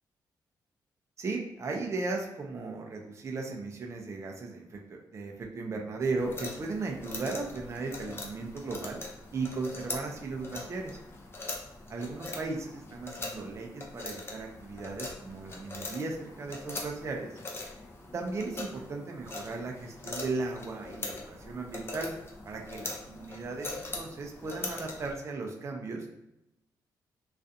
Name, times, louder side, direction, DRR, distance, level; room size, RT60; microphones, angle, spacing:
voice 1, 1.2-9.0 9.3-11.0 11.9-17.3 18.1-22.1 22.4-26.1, right 3 dB, 40° right, 1 dB, 0.5 m, -36 dB
sound 1, 6.2-25.1, left 2 dB, 30° left, 0.5 m, -42 dB
2.4 x 2.3 x 2.6 m, 0.88 s
cardioid pair, 90°, 8 cm